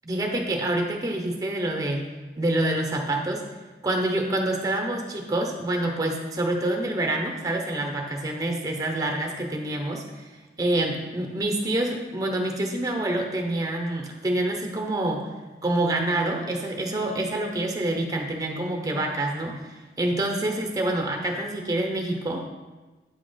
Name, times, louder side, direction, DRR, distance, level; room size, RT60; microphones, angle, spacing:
voice 1, 0.0-2.1 2.4-3.4 3.8-10.3 10.6-15.3 15.6-19.7 20.0-22.5, right 1 dB, 20° right, 2 dB, 0.8 m, -27 dB
8.5 x 3.1 x 5.6 m, 1.2 s
head